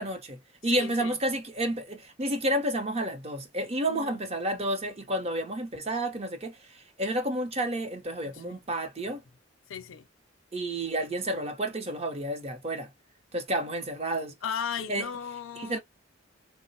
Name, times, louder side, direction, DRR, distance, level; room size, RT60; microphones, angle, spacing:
voice 1, 0.0-9.2 10.5-12.9 13.3-14.3 14.9-15.1 15.6-15.8, right 1 dB, 30° right, 0.7 m, -30 dB
voice 2, 0.7-1.2 3.9-4.2 8.2-8.6 9.7-10.1 14.4-15.8, left 7 dB, 80° left, 0.5 m, -36 dB
3.8 x 2.1 x 2.7 m
head